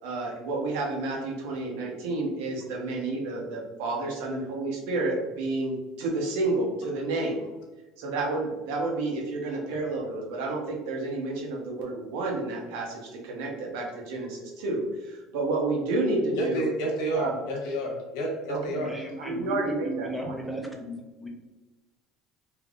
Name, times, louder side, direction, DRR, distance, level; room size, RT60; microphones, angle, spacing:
voice 1, 0.0-7.4 8.0-16.7 17.1-17.3 18.5-18.9 19.2-20.3, right 2 dB, 90° right, 0 dB, 0.9 m, -30 dB
voice 2, 16.3-18.9, right 1 dB, 80° left, -2 dB, 1.1 m, -30 dB
voice 3, 18.8-20.9 21.2-21.3, right 1 dB, 5° right, 1 dB, 0.5 m, -34 dB
3.3 x 2.9 x 2.5 m, 1.2 s
cardioid pair, 165°, 0 cm